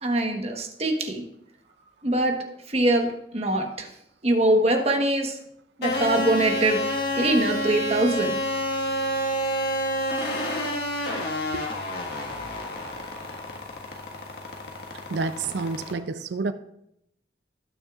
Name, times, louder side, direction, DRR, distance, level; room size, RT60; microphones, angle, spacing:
voice 1, 0.0-1.2 2.0-2.4 2.7-3.9 4.2-5.4 5.8-6.8 7.2-8.4, right 1 dB, 35° right, 3 dB, 1.2 m, -23 dB
sound 1, 5.8-15.9, equal, 65° left, 1.6 m, -29 dB
voice 2, 15.1-16.5, right 4 dB, 75° right, 11 dB, 0.5 m, -29 dB
18.0 x 6.5 x 2.5 m, 0.79 s
head